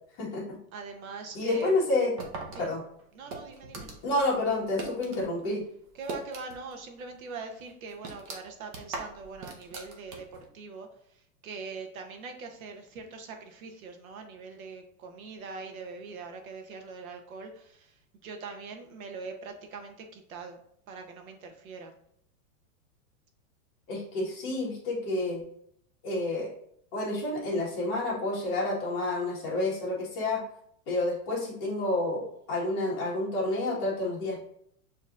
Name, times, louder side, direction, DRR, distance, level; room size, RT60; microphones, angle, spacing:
voice 1, 0.2-0.6 1.3-2.1 2.6-2.8 4.0-5.6 23.9-25.4 26.0-26.5 26.9-30.4 30.9-32.2 32.5-34.5, left 2 dB, 30° left, -4 dB, 1.4 m, -29 dB
voice 2, 0.7-1.8 2.5-2.7 3.1-3.9 5.9-20.6 20.9-21.9, right 4 dB, 75° right, 5 dB, 1.0 m, -42 dB
sound 1, 2.2-5.3 5.6-6.8 7.1-7.2 7.6-10.5, right 3 dB, 25° right, 0.5 m, -41 dB
6.6 x 3.0 x 2.5 m, 0.68 s
supercardioid pair, 165°, 42 cm